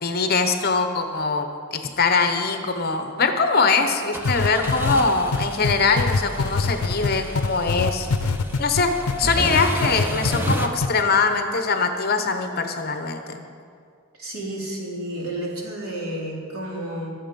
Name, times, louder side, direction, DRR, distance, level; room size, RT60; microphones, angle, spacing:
voice 1, 0.0-8.1 8.6-13.4, left 4 dB, 45° left, 6 dB, 0.9 m, -22 dB
sound 1, 4.1-10.7, equal, 10° right, 0.7 m, -31 dB
sound 2, 4.2-9.2 9.5-10.5 10.8-10.9, left 4 dB, 85° left, 0.5 m, -23 dB
voice 2, 14.2-17.1, right 1 dB, 70° right, -3 dB, 3.3 m, -31 dB
21.5 x 7.4 x 5.3 m, 2.2 s
head